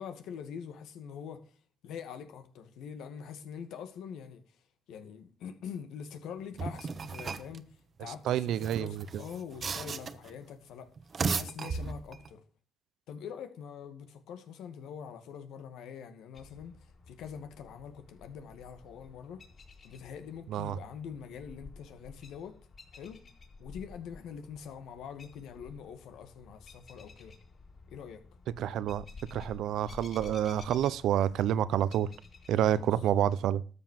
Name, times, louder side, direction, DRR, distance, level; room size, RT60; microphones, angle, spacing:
voice 1, 0.0-1.4 1.8-4.4 4.9-7.7 8.0-10.9 11.3-12.4 13.1-16.8 17.1-19.4 19.8-22.6 22.9-23.2 23.6-27.4 27.9-28.2 32.7-32.9, left 7 dB, 85° left, 2.1 m, -44 dB
sound 1, 6.6-7.6 8.5-10.3 11.0-12.3, right 5 dB, 45° right, 1.1 m, -35 dB
voice 2, 8.2-9.2 20.5-20.8 28.6-29.0 29.3-32.1 32.5-33.6, right 10 dB, 80° right, 0.7 m, -28 dB
sound 2, 16.3-33.2, left 3 dB, 50° left, 5.3 m, -53 dB
13.0 x 7.2 x 7.4 m
cardioid pair, 90°, 0 cm